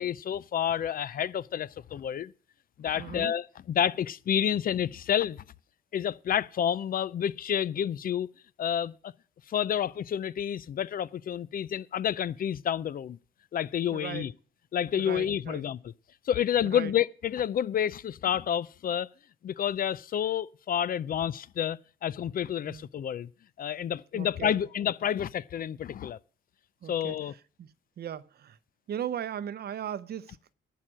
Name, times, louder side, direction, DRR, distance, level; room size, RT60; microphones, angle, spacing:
voice 1, 0.0-2.3 2.8-5.4 5.9-8.3 8.6-9.1 9.5-13.2 13.5-14.3 14.7-15.8 16.3-19.1 19.4-23.3 23.6-26.2 26.9-27.3, left 9 dB, 45° left, 0.5 m, -29 dB
voice 2, 3.0-3.3 13.9-14.3 15.0-15.6 16.6-16.9 22.7-22.8 24.1-24.6 26.8-27.2 27.6-28.6 28.9-30.5, right 10 dB, 50° right, 0.7 m, -38 dB
11.0 x 7.4 x 6.2 m
cardioid pair, 90°, 20 cm